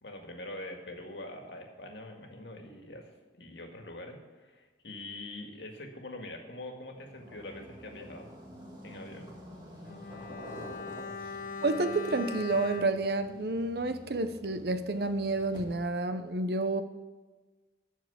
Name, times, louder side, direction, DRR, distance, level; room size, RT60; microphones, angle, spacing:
voice 1, 0.0-8.3 8.8-9.3, left 1 dB, 75° left, 2 dB, 1.9 m, -44 dB
sound 1, 6.9-16.0, equal, 25° right, 1.8 m, -49 dB
Bowed string instrument, 9.8-14.3 14.6-14.7, left 4 dB, 50° left, 1.0 m, -42 dB
voice 2, 11.6-16.8, right 2 dB, 60° right, 10 dB, 0.8 m, -30 dB
13.5 x 4.7 x 8.3 m, 1.3 s
head